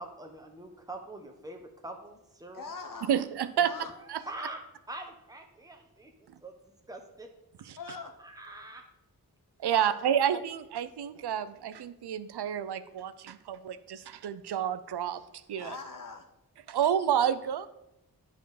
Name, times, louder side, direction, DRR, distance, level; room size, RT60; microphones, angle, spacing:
voice 1, 0.0-2.7 3.6-3.7 4.2-4.6 4.9-6.5 6.9-7.3 8.2-8.9, right 1 dB, 10° right, 4 dB, 1.1 m, -44 dB
voice 2, 2.5-3.1 3.6-3.9 4.2-4.3 7.8-8.1 9.7-9.9 15.5-16.3, left 4 dB, 55° left, 5 dB, 0.8 m, -42 dB
voice 3, 3.1-3.7 4.1-4.2 6.3-6.4 7.7-7.8 9.6-15.7 16.7-17.7, right 9 dB, 90° right, 13 dB, 0.5 m, -29 dB
10.0 x 4.5 x 4.9 m, 0.90 s
wide cardioid pair, 75°, 39 cm